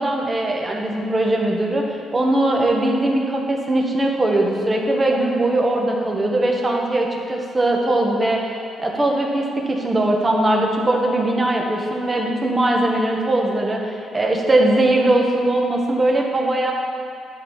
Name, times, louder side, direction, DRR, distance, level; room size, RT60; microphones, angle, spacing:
voice 1, 0.0-1.8 2.1-8.5 8.8-16.7, right 1 dB, 25° right, 0 dB, 1.5 m, -20 dB
11.0 x 4.6 x 7.4 m, 2.4 s
cardioid pair, 90°, 0 cm